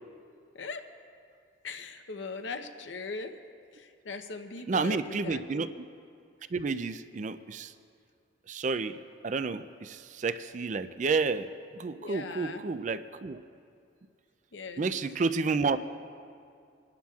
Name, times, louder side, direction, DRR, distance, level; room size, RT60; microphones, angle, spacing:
voice 1, 1.6-3.3 3.7-5.4 12.0-12.6 14.5-14.8, left 4 dB, 70° left, 7 dB, 0.7 m, -39 dB
voice 2, 4.7-5.7 6.5-7.7 8.5-8.9 9.2-11.5 11.7-13.4 14.8-15.8, right 4 dB, 40° right, 12 dB, 0.4 m, -30 dB
28.0 x 11.5 x 2.4 m, 2.3 s
head